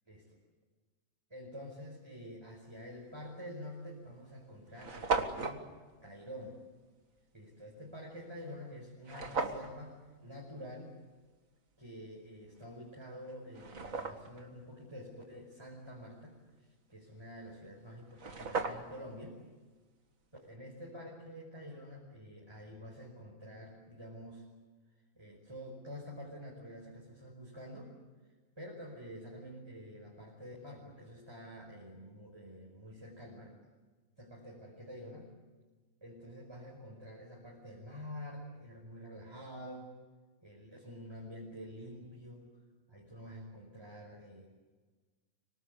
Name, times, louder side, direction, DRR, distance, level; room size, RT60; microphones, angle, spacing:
voice 1, 1.3-5.7 6.0-6.6 7.3-10.9 11.8-16.4 16.9-19.4 20.4-24.4 25.1-27.9 28.6-33.6 34.2-35.3 36.0-39.9 40.4-42.6 42.9-44.5, equal, 20° right, -2 dB, 5.1 m, -48 dB
sound 1, 3.2-3.4 4.1-4.2 4.4-4.5 4.7-5.6 9.0-9.7 12.6-12.7 13.3-14.4 17.8-17.9 18.1-19.1, right 4 dB, 85° right, 2.3 m, -36 dB
25.5 x 24.0 x 8.2 m, 1.4 s
omnidirectional pair, 1.4 m